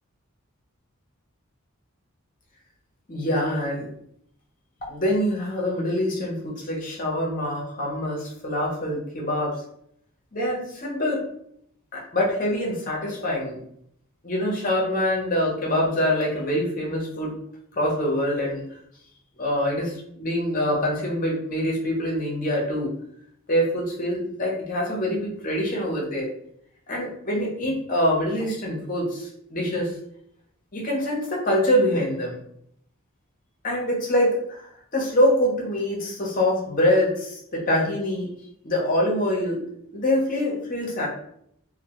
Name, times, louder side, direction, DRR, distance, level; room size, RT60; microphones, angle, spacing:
voice 1, 3.1-3.9 4.9-9.6 10.3-11.2 11.9-13.6 14.2-17.3 17.7-18.6 19.4-19.9 20.2-22.9 23.5-26.3 26.9-29.9 30.7-32.4 33.6-38.3 38.6-41.1, left 1 dB, 40° left, -3 dB, 0.7 m, -25 dB
2.2 x 2.1 x 2.9 m, 0.70 s
head